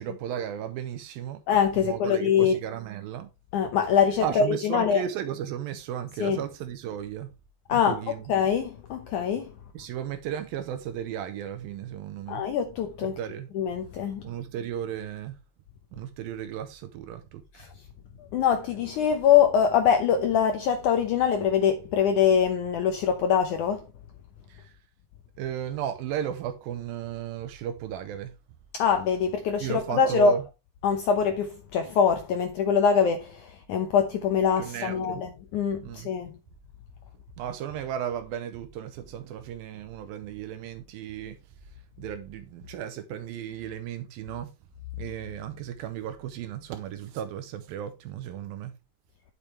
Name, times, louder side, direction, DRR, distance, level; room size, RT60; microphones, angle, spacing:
voice 1, 0.0-1.4 1.8-3.3 4.2-7.3 7.7-8.2 9.7-12.4 13.0-13.5 14.2-15.4 15.9-17.4 24.5-24.7 25.4-28.3 29.6-30.4 34.6-35.2 35.8-36.1 37.4-41.4 42.0-44.5 44.9-48.7, right 10 dB, 75° right, 2.4 m, -35 dB
voice 2, 1.5-2.6 3.5-5.0 6.2-6.4 7.7-8.0 8.3-9.5 12.3-13.2 13.5-14.2 17.5-17.7 18.3-23.9 28.7-30.4 30.8-36.4, left 7 dB, 75° left, 1.8 m, -24 dB
10.5 x 7.1 x 3.3 m
omnidirectional pair, 4.6 m